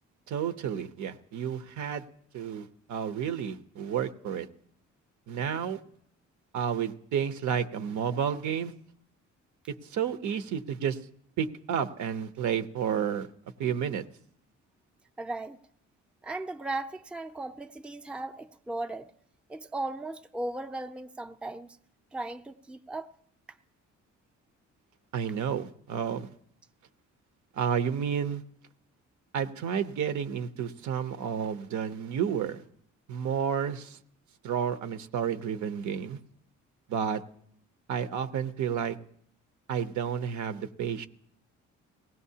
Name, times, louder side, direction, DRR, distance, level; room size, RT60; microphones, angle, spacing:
voice 1, 0.3-2.0 2.3-4.5 5.3-5.8 6.5-8.7 9.9-11.0 11.4-13.3 13.6-14.0 25.1-26.3 27.6-28.4 29.3-32.6 33.1-34.0 34.4-36.2 36.9-37.2 37.9-39.0 39.7-41.1, right 8 dB, 70° right, 0.8 m, -31 dB
voice 2, 15.2-15.6 16.2-19.1 19.5-21.8 22.1-23.1, right 2 dB, 5° right, 0.5 m, -37 dB
19.5 x 17.0 x 2.8 m
cardioid pair, 90°, 30 cm